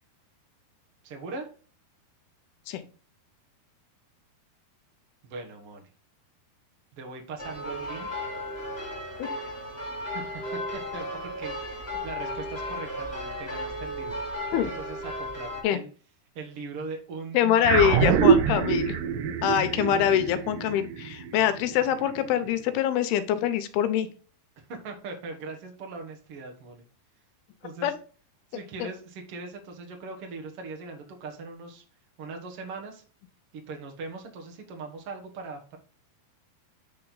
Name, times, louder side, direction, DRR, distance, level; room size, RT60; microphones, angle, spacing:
voice 1, 1.0-1.5 5.2-5.9 6.9-8.1 10.1-10.2 10.5-14.2 14.5-15.9 16.3-18.1 24.7-26.8 27.6-27.9 28.5-31.8 32.2-33.0 33.5-35.8, right 3 dB, 60° right, 2 dB, 1.5 m, -40 dB
sound 1, 7.4-15.6, equal, 15° left, 1.8 m, -35 dB
voice 2, 17.3-19.0 19.4-24.1 27.8-27.9, left 10 dB, 80° left, 11 dB, 2.6 m, -24 dB
sound 2, 17.6-22.3, right 7 dB, 85° right, 2.6 m, -24 dB
8.6 x 4.4 x 3.9 m, 0.39 s
omnidirectional pair, 4.6 m